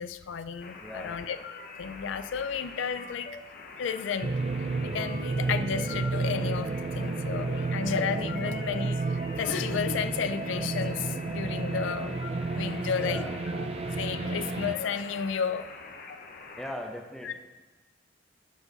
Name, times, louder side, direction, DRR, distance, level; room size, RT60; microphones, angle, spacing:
voice 1, 0.0-1.4 1.8-3.3 3.8-4.3 4.8-13.2 14.0-15.7 17.2-17.3, left 7 dB, 85° left, 12 dB, 0.4 m, -32 dB
sound 1, 0.6-16.7, left 4 dB, 55° left, 0.9 m, -45 dB
voice 2, 0.8-1.2 13.0-13.4 16.6-17.4, equal, ahead, 2 dB, 0.9 m, -39 dB
sound 2, 4.2-14.8, right 3 dB, 35° right, 0.3 m, -31 dB
10.5 x 4.7 x 6.7 m, 1.3 s
head